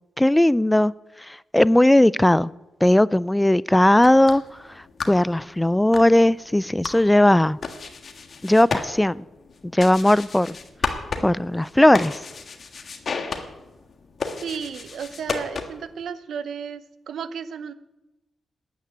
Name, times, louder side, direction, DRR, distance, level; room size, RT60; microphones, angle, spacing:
voice 1, 0.2-0.9 1.3-2.5 2.8-4.4 4.8-7.6 8.4-9.2 9.7-10.6 11.2-12.2, left 1 dB, 10° left, 20 dB, 0.3 m, -18 dB
sound 1, 3.9-15.9, left 4 dB, 55° left, 1.6 m, -34 dB
voice 2, 14.4-17.7, right 7 dB, 75° right, 14 dB, 0.7 m, -33 dB
9.4 x 9.3 x 9.7 m, 1.0 s
cardioid pair, 55°, 0 cm